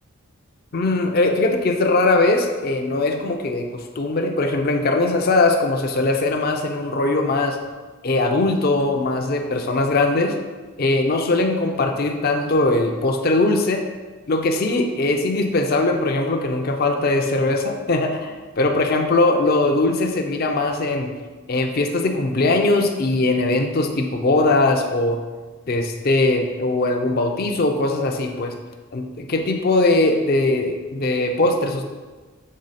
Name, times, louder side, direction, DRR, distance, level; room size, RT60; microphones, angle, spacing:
voice 1, 0.7-7.6 8.0-10.3 10.8-13.8 14.3-21.1 21.5-25.2 25.7-28.5 28.9-31.8, left 2 dB, 45° left, 3 dB, 0.5 m, -20 dB
6.4 x 3.9 x 4.1 m, 1.3 s
head